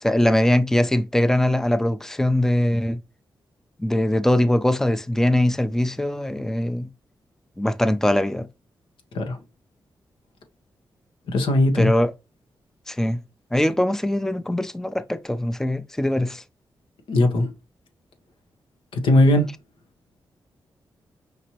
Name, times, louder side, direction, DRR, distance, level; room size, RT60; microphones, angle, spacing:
voice 1, 0.0-3.0 3.8-6.9 7.6-8.5 11.8-12.1 12.9-13.2 13.5-16.4, left 1 dB, 5° left, 0.5 m, -21 dB
voice 2, 11.3-11.9 17.1-17.5 18.9-19.5, left 1 dB, 85° left, 1.0 m, -19 dB
5.1 x 2.8 x 3.0 m
cardioid pair, 60°, 8 cm